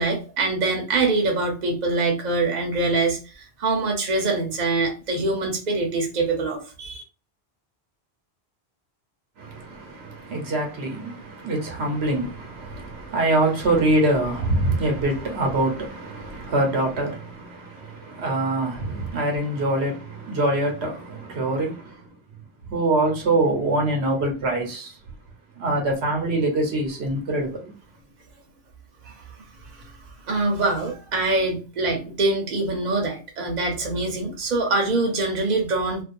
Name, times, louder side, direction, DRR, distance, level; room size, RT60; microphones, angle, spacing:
voice 1, 0.0-7.0 29.0-29.4 29.6-29.9 30.3-36.0, right 3 dB, 45° right, 0.8 m, -24 dB
voice 2, 9.4-22.1 22.7-25.0 25.5-27.7, right 2 dB, 80° right, 1.0 m, -24 dB
2.4 x 2.3 x 2.5 m
omnidirectional pair, 1.1 m